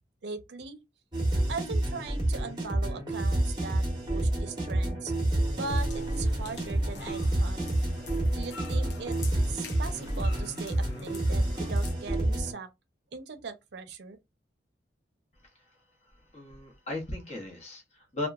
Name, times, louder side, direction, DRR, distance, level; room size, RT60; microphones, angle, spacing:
voice 1, 0.2-0.8 1.5-5.1 5.6-7.6 8.3-9.2 9.5-12.7 13.1-14.2, right 4 dB, 75° right, 0.5 m, -39 dB
sound 1, 1.1-12.5, right 1 dB, 25° right, 0.7 m, -29 dB
sound 2, 5.5-11.9, left 3 dB, 75° left, 0.6 m, -45 dB
voice 2, 16.1-18.3, left 2 dB, 40° left, 0.8 m, -37 dB
2.9 x 2.2 x 2.3 m
head